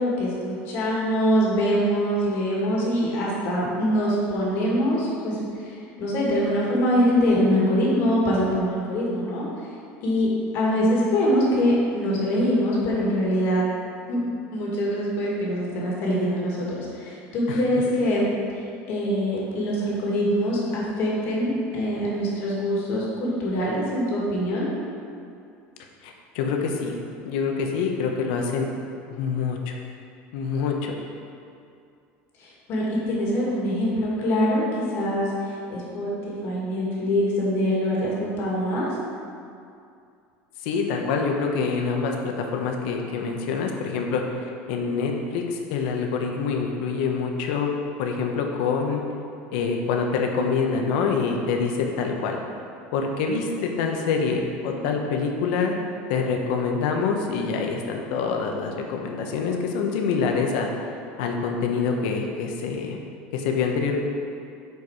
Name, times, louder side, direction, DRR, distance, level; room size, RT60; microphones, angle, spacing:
voice 1, 0.0-9.5 10.0-10.3 10.5-13.6 14.1-14.2 14.5-18.3 18.6-24.7 32.4-34.6 34.9-38.9 54.7-54.9, equal, 50° left, -4 dB, 1.8 m, -24 dB
voice 2, 26.0-26.9 27.2-28.7 29.1-29.7 30.3-30.9 40.6-44.2 44.7-47.7 48.0-49.0 49.5-52.4 52.9-55.7 56.1-60.7 61.2-63.0 63.3-64.0, left 5 dB, 80° left, 2 dB, 0.9 m, -26 dB
7.1 x 4.7 x 4.8 m, 2.4 s
cardioid pair, 165°, 5 cm